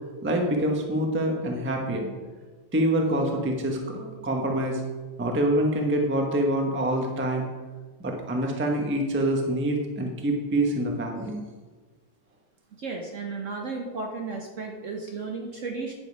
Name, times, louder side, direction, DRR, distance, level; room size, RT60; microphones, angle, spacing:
voice 1, 0.2-2.1 2.7-4.8 5.2-7.5 8.0-11.4, right 1 dB, 10° right, 1 dB, 0.6 m, -26 dB
voice 2, 12.8-15.9, right 4 dB, 55° right, 1 dB, 0.9 m, -34 dB
10.0 x 5.2 x 5.3 m, 1.3 s
omnidirectional pair, 2.1 m